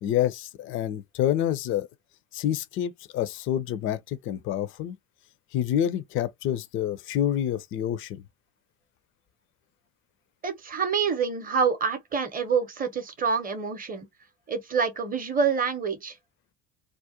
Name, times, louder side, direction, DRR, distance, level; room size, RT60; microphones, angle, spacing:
voice 1, 0.0-1.9 2.3-5.0 5.5-8.2, left 11 dB, 35° left, 0.4 m, -28 dB
voice 2, 10.4-14.1 14.5-16.2, right 6 dB, 25° right, 0.7 m, -27 dB
2.4 x 2.1 x 2.7 m
figure-of-eight pair, 60°, 38 cm